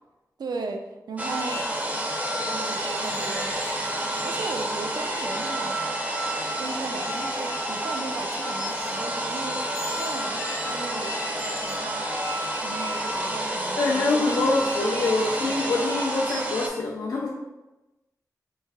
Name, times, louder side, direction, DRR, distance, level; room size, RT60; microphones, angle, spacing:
voice 1, 0.4-1.8 2.4-3.6 4.2-5.8 6.2-6.3 6.6-9.6 9.9-12.1 12.6-14.6, right 3 dB, 75° right, 4 dB, 0.3 m, -37 dB
sound 1, 1.2-16.7, right 1 dB, 20° right, 0.5 m, -29 dB
sound 2, 2.6-4.5 5.5-5.6 6.2-8.3 8.6-9.4 9.7-12.0 13.1-15.8 16.2-16.4, equal, 35° left, 0.7 m, -43 dB
voice 2, 13.8-17.3, left 2 dB, 70° left, -4 dB, 0.4 m, -25 dB
3.1 x 2.5 x 2.3 m, 1.0 s
cardioid pair, 45°, 7 cm